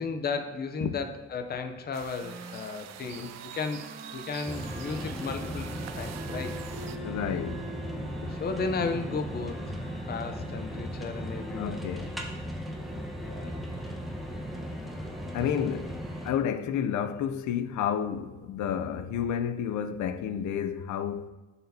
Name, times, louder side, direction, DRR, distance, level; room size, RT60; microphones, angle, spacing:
voice 1, 0.0-6.7 8.3-11.8 12.9-13.6, left 4 dB, 30° left, 0.6 m, -35 dB
sound 1, 1.9-7.0, right 10 dB, 60° right, 0.5 m, -45 dB
Wind instrument woodwind instrument, 2.2-11.7, right 3 dB, 40° right, 1.0 m, -47 dB
sound 2, 4.5-16.3, equal, ahead, 1.0 m, -37 dB
voice 2, 7.0-7.7 8.2-8.4 11.5-12.1 15.3-16.0 16.2-21.3, left 8 dB, 70° left, 0.6 m, -31 dB
11.0 x 4.1 x 2.7 m
cardioid pair, 90°, 30 cm